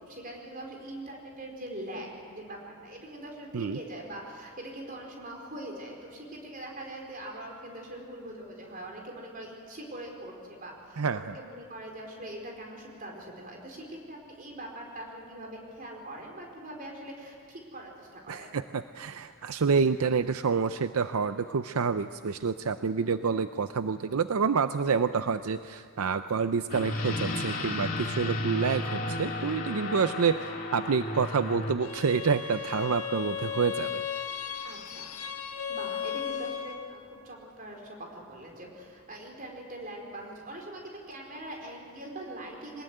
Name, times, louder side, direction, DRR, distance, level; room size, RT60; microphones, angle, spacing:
voice 1, 0.0-18.6 22.8-23.1 34.6-35.1 35.7-42.8, right 1 dB, 40° right, 1 dB, 4.5 m, -42 dB
voice 2, 11.0-11.4 18.3-34.0, right 5 dB, 75° right, 11 dB, 0.5 m, -28 dB
sound 1, 26.7-31.7, left 2 dB, 40° left, 2.9 m, -33 dB
Bowed string instrument, 31.8-37.0, left 8 dB, 75° left, 1.4 m, -35 dB
22.5 x 20.0 x 9.2 m, 2.2 s
head